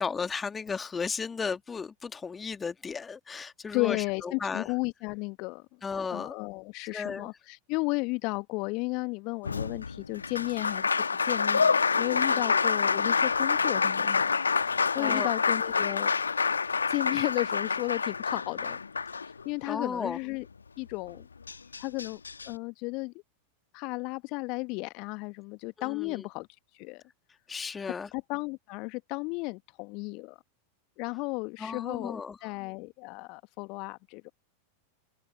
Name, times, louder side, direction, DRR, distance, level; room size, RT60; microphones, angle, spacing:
voice 1, 0.0-4.7 5.8-6.3 6.9-7.3 12.3-12.6 15.0-15.3 19.7-20.2 25.8-26.3 27.5-28.1 31.6-32.4, left 5 dB, 15° left, 2.1 m, -35 dB
voice 2, 3.7-5.7 6.1-14.5 14.9-16.1 16.9-18.8 19.4-20.5 20.8-21.3 21.8-23.1 23.7-26.5 26.7-27.0 28.1-30.4 31.0-34.3, left 27 dB, 45° left, 1.4 m, -34 dB
Applause, 9.4-19.7 21.1-21.2 21.5-22.5, left 5 dB, 75° left, 1.3 m, -27 dB
open air
figure-of-eight pair, 90°, 0 cm